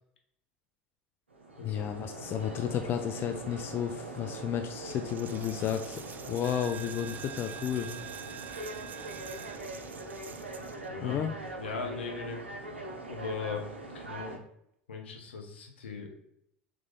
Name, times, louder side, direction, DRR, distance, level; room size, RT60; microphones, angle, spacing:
sound 1, 1.3-14.4, right 2 dB, 90° right, 0.6 m, -42 dB
voice 1, 1.6-8.1 11.0-11.3, left 9 dB, 40° left, 7 dB, 0.4 m, -33 dB
Coin (dropping), 4.9-10.9, right 7 dB, 30° right, 0.4 m, -45 dB
voice 2, 10.8-11.2 11.6-12.4 13.1-13.7 13.9-14.4 14.9-16.1, left 5 dB, 80° left, 3 dB, 0.8 m, -38 dB
3.7 x 3.1 x 3.6 m, 0.74 s
figure-of-eight pair, 75°, 6 cm